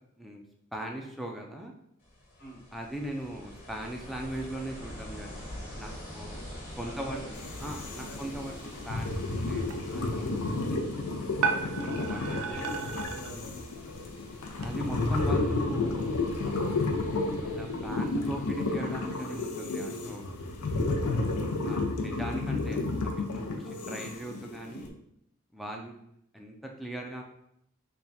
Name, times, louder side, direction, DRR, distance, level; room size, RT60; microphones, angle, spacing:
voice 1, 0.7-1.7 2.7-6.4 6.8-7.2 7.6-10.8 11.6-12.8 14.6-16.1 17.4-20.4 21.6-24.9 25.5-25.9 26.3-27.2, right 1 dB, ahead, 1 dB, 0.3 m, -39 dB
Ocean, 2.0-19.4, left 1 dB, 20° left, 1.1 m, -46 dB
voice 2, 5.8-7.4 8.1-8.2 12.0-13.7 21.0-21.7 23.7-23.8 27.0-27.2, right 1 dB, 45° left, -3 dB, 1.0 m, -47 dB
sound 1, 7.3-24.9, left 2 dB, 90° left, 0.5 m, -32 dB
sound 2, 9.6-14.7, right 5 dB, 75° right, 0.5 m, -36 dB
3.4 x 2.2 x 4.0 m, 0.75 s
head